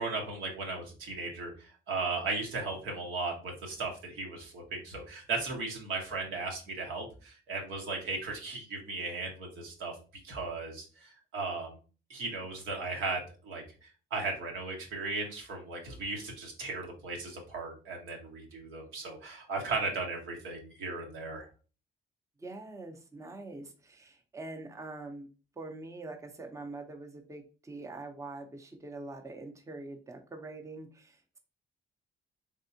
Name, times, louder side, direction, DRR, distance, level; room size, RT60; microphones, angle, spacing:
voice 1, 0.0-9.9 10.2-11.7 12.1-21.5, right 3 dB, 85° right, 0 dB, 1.3 m, -36 dB
voice 2, 22.4-25.3 25.6-31.4, right 2 dB, 15° right, 4 dB, 0.7 m, -44 dB
3.6 x 3.3 x 2.7 m, 0.36 s
cardioid pair, 90°, 20 cm